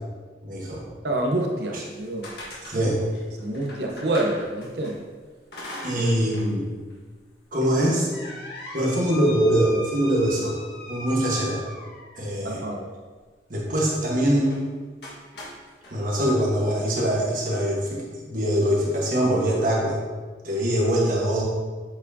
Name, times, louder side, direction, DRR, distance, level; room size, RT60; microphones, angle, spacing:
voice 1, 0.4-0.8 1.7-1.8 2.7-3.0 5.8-6.7 7.5-8.1 8.7-10.6 10.9-11.6 12.2-12.6 13.5-14.5 15.9-19.9 20.4-21.4, equal, 50° right, -3 dB, 1.3 m, -23 dB
voice 2, 1.0-2.3 2.7-2.9 3.4-5.0 6.0-6.1 12.4-12.9, right 1 dB, 70° right, 1 dB, 0.9 m, -27 dB
sound 1, 1.8-4.9 5.5-6.5 6.9-7.0 7.6-12.3 14.4-14.6 15.0-15.9, left 1 dB, 70° left, 1.5 m, -39 dB
7.9 x 4.4 x 2.7 m, 1.4 s
head